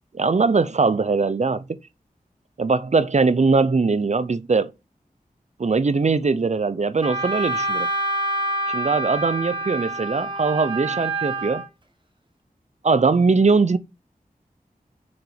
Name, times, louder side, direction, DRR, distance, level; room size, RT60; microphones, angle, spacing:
voice 1, 0.1-1.8 2.6-4.7 5.6-7.9 8.7-11.6 12.8-13.8, right 4 dB, 50° right, 0.6 m, -21 dB
Wind instrument woodwind instrument, 7.0-11.7, right 1 dB, 30° right, 1.4 m, -27 dB
6.1 x 5.0 x 5.6 m
wide cardioid pair, 75°, 16 cm